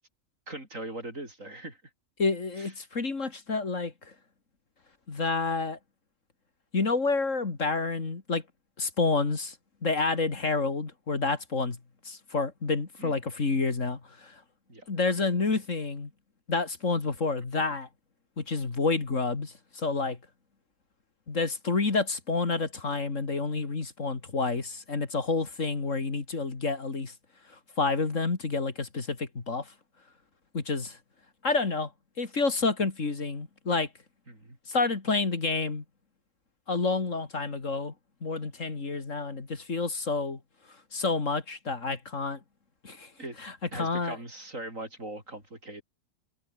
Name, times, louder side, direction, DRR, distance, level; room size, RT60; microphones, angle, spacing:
voice 1, 0.5-1.8 2.6-2.7 13.0-13.1 14.7-14.9 34.3-34.6 43.2-43.4 43.7-45.8, right 1 dB, 60° right, 7.7 m, -40 dB
voice 2, 2.2-4.1 5.1-5.8 6.7-8.4 8.8-9.6 9.8-11.8 12.0-14.4 14.9-16.1 16.5-17.9 18.4-20.2 21.3-27.1 27.8-29.7 30.5-31.0 31.4-31.9 32.2-33.9 34.7-35.8 36.7-37.9 38.2-40.4 40.9-42.4 42.8-43.1 43.4-44.2, left 3 dB, 55° left, 2.8 m, -29 dB
omnidirectional pair, 1.6 m